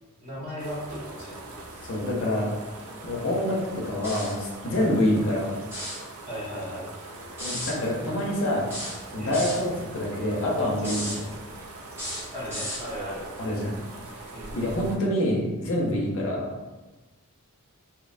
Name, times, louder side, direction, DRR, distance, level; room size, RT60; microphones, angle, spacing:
voice 1, 0.2-1.6 4.7-4.8 6.3-6.9 9.2-9.4 12.3-13.3 14.3-14.5, equal, 30° right, -7 dB, 0.8 m, -36 dB
sound 1, 0.6-15.0, right 2 dB, 65° right, 0.4 m, -42 dB
voice 2, 1.9-2.5 3.0-5.6 7.4-8.7 9.1-11.4 13.4-13.8 14.1-16.5, left 1 dB, 60° left, -2 dB, 0.6 m, -26 dB
sound 2, 4.0-4.4 5.6-6.0 7.4-7.8 8.7-9.6 10.8-11.2 11.9-12.8, equal, 10° right, 0.5 m, -34 dB
2.8 x 2.1 x 2.4 m, 1.2 s
head